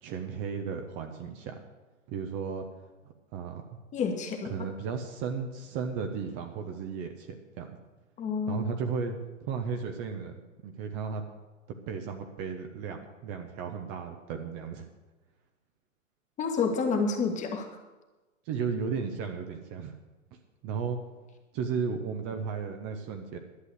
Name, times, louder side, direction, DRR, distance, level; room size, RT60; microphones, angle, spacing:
voice 1, 0.0-1.6 2.1-2.7 3.3-3.6 4.4-7.8 8.5-9.1 9.4-11.2 11.9-14.9 18.5-19.9 20.6-21.0 21.5-23.4, right 6 dB, 30° right, 5 dB, 1.0 m, -34 dB
voice 2, 3.9-4.5 8.2-8.7 16.4-17.7, left 5 dB, 20° left, 3 dB, 1.5 m, -29 dB
11.5 x 8.1 x 7.8 m, 1.2 s
figure-of-eight pair, 120°, 39 cm